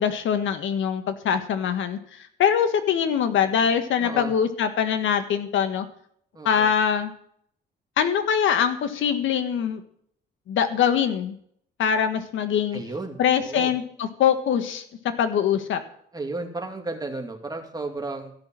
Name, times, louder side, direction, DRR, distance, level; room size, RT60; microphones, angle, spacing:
voice 1, 0.0-5.9 6.4-7.1 8.0-9.8 10.5-11.4 11.8-12.8 13.2-14.8 15.2-15.8, left 8 dB, 80° left, 9 dB, 1.6 m, -23 dB
voice 2, 4.0-4.3 6.3-6.7 12.7-13.7 16.1-18.3, right 2 dB, 20° right, 3 dB, 2.5 m, -33 dB
14.0 x 6.3 x 9.0 m, 0.67 s
cardioid pair, 90°, 20 cm